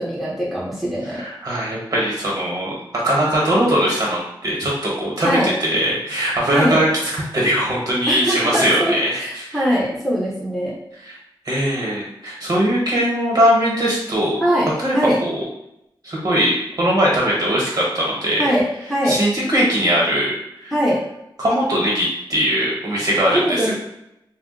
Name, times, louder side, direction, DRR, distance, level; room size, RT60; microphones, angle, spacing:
voice 1, 0.0-1.2 5.2-5.5 6.5-6.8 8.1-10.8 14.4-15.2 18.4-19.2 20.7-21.0 23.3-23.7, equal, ahead, -7 dB, 0.7 m, -21 dB
voice 2, 1.1-2.7 3.0-6.9 7.3-9.6 11.4-14.4 14.8-15.0 15.2-15.4 16.0-18.4 19.1-20.3 20.6-20.7 21.4-23.7, equal, 45° right, -5 dB, 1.2 m, -20 dB
2.4 x 2.2 x 3.7 m, 0.84 s
wide cardioid pair, 115°, 9 cm